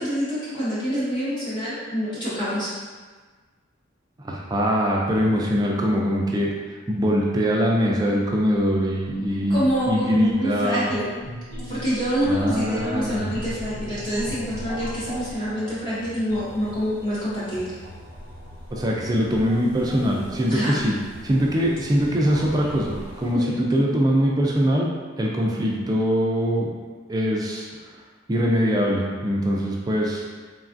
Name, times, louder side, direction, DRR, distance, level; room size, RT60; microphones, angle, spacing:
voice 1, 0.0-2.7 9.5-11.2 11.5-17.8 20.5-20.8 23.3-23.8, equal, 25° left, -11 dB, 0.7 m, -26 dB
voice 2, 4.2-6.5 6.9-10.9 12.3-13.3 18.7-20.9 21.2-24.9 25.2-26.7 27.1-27.7 28.3-30.2, equal, 20° right, -2 dB, 0.3 m, -22 dB
sound 1, 8.2-23.3, equal, 60° left, 1.0 m, -39 dB
3.2 x 2.3 x 2.5 m, 1.4 s
head